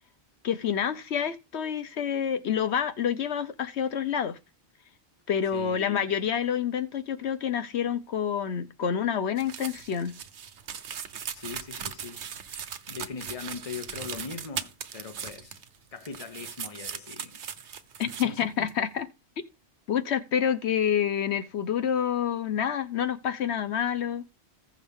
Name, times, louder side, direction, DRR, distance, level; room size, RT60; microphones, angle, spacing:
voice 1, 0.4-4.4 5.3-10.1 18.0-19.1 19.9-24.2, left 8 dB, 80° left, 1.2 m, -28 dB
sound 1, 9.4-15.8 16.0-18.2 18.7-18.8, right 7 dB, 85° right, 1.2 m, -39 dB
voice 2, 11.3-12.2 12.5-15.6 15.9-17.4 18.0-18.7, left 5 dB, 35° left, 1.1 m, -40 dB
15.5 x 6.3 x 3.6 m
omnidirectional pair, 1.1 m